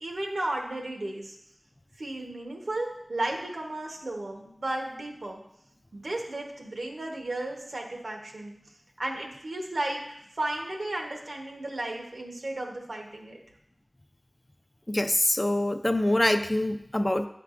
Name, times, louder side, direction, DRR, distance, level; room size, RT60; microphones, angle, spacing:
voice 1, 0.0-1.3 2.0-5.4 5.9-8.6 9.0-13.4, right 1 dB, 85° right, 1 dB, 1.0 m, -34 dB
voice 2, 14.9-17.3, left 1 dB, 30° left, 7 dB, 0.4 m, -25 dB
9.1 x 4.5 x 2.5 m, 0.79 s
wide cardioid pair, 40°, 0 cm